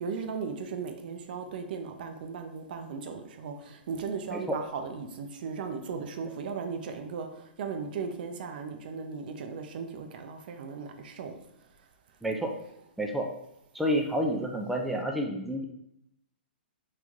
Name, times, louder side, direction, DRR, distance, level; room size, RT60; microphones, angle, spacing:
voice 1, 0.0-11.4, right 5 dB, 60° right, 6 dB, 0.5 m, -37 dB
voice 2, 12.2-12.5 13.0-13.3 13.7-15.7, equal, ahead, 1 dB, 0.4 m, -29 dB
3.2 x 2.5 x 3.5 m, 0.80 s
hypercardioid pair, 125°, 6 cm